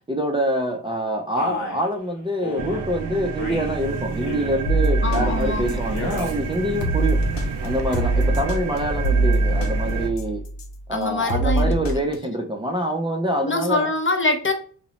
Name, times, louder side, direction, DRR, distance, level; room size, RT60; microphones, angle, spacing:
voice 1, 0.1-7.2 7.6-10.4 10.9-13.9, right 1 dB, 10° right, 0.5 m, -25 dB
Male speech man speaking, 1.4-1.8 2.4-2.8 3.4-3.8 4.2-4.6 5.0-5.5 5.9-6.3, left 2 dB, 45° left, 1.0 m, -31 dB
sound 1, 2.6-10.1, right 5 dB, 70° right, 0.6 m, -30 dB
sound 2, 4.7-6.3 6.8-10.8 11.3-12.2, right 2 dB, 75° left, 0.7 m, -23 dB
voice 2, 5.0-5.8 10.9-11.8 13.4-14.5, left 2 dB, 30° left, 0.6 m, -24 dB
2.6 x 2.0 x 3.0 m
supercardioid pair, 40°, 43 cm